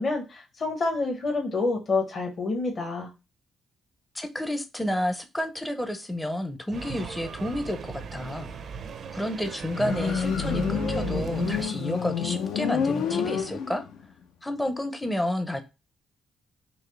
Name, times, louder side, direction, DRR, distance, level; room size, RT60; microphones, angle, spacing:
voice 1, 0.0-3.1, left 3 dB, 40° left, 0.9 m, -28 dB
voice 2, 4.1-8.5 9.1-13.8 14.4-15.6, left 1 dB, 5° left, 0.5 m, -30 dB
sound 1, 6.7-11.7, right 5 dB, 55° right, 0.4 m, -36 dB
Motorcycle, 9.7-14.0, left 7 dB, 90° left, 0.5 m, -28 dB
4.0 x 2.7 x 3.1 m
cardioid pair, 125°, 0 cm